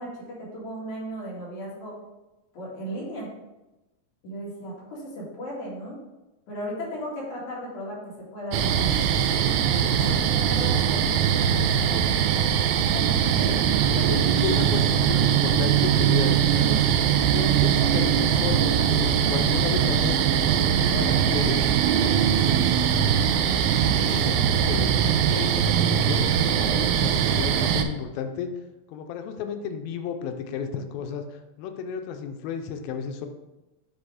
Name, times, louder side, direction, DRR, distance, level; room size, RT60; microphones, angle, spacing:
voice 1, 0.0-1.9 2.5-3.3 4.2-6.0 6.5-9.4 10.0-11.1 11.5-12.0 12.9-13.6 14.0-14.6 23.9-24.6, equal, 60° left, -6 dB, 3.2 m, -36 dB
sound 1, 8.5-27.8, right 8 dB, 80° right, 2.2 m, -21 dB
voice 2, 13.9-16.8 17.2-20.2 20.5-21.6 22.1-23.2 24.0-26.3 26.6-28.5 28.9-33.3, left 7 dB, 85° left, 7 dB, 2.4 m, -33 dB
7.9 x 3.5 x 4.7 m, 1.0 s
omnidirectional pair, 4.1 m